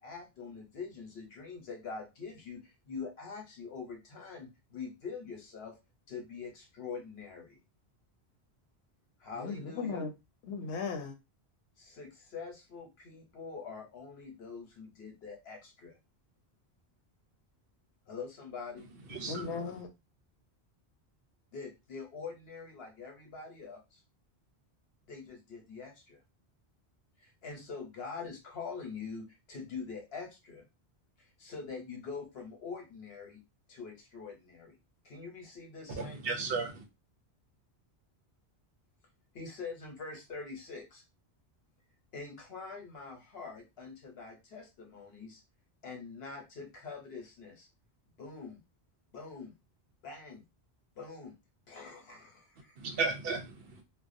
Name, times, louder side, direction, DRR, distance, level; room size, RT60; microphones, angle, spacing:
voice 1, 0.0-5.8 6.1-7.6 9.2-10.0 11.8-16.0 18.1-18.9 21.5-24.0 25.1-26.2 27.2-30.7 31.2-33.4 33.7-34.8 35.0-36.4 39.3-41.0 42.1-45.4 45.8-47.7 48.2-48.6 49.1-49.5 50.0-50.4 51.0-51.3 51.7-52.8, left 5 dB, 70° left, 1.1 m, -44 dB
voice 2, 9.4-10.1 10.5-11.1 19.3-19.9, left 5 dB, 90° left, 0.9 m, -36 dB
voice 3, 19.1-19.6 36.0-36.8 52.8-53.8, right 4 dB, 65° right, 0.7 m, -34 dB
2.4 x 2.1 x 2.5 m
omnidirectional pair, 1.1 m